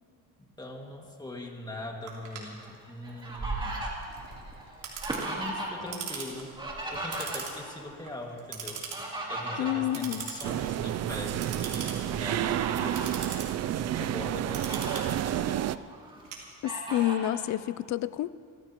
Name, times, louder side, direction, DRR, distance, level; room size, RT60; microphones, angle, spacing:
voice 1, 0.6-3.9 5.2-6.6 6.9-8.9 9.3-13.2 13.6-15.7, left 1 dB, 15° left, 1 dB, 2.1 m, -41 dB
Clock, 2.1-17.0, right 6 dB, 80° right, 3.5 m, -42 dB
Fowl, 2.6-5.9 6.2-7.8 8.7-10.8 11.2-11.4 12.1-13.1 13.8-13.9 14.2-15.0 15.5-16.2 16.7-17.4, right 2 dB, 15° right, 3.0 m, -37 dB
voice 2, 9.6-10.3 16.6-18.3, left 13 dB, 60° left, 17 dB, 0.5 m, -29 dB
sound 1, 10.4-15.8, right 12 dB, 55° right, 0.4 m, -30 dB
30.0 x 14.5 x 3.0 m, 2.1 s
cardioid pair, 125°, 32 cm